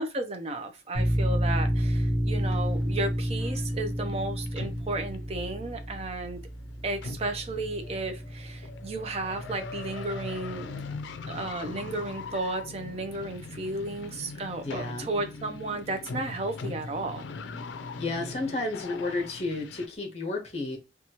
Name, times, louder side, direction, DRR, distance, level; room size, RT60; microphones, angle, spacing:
voice 1, 0.0-6.4 6.8-10.7 11.3-17.3, right 2 dB, 35° right, 0.4 m, -33 dB
sound 1, 0.9-12.2, equal, 65° right, 0.9 m, -31 dB
sound 2, 2.3-19.9, left 3 dB, 90° left, 0.4 m, -41 dB
voice 2, 14.6-15.1 18.0-20.8, left 2 dB, 35° left, 0.8 m, -32 dB
2.8 x 2.3 x 2.8 m
head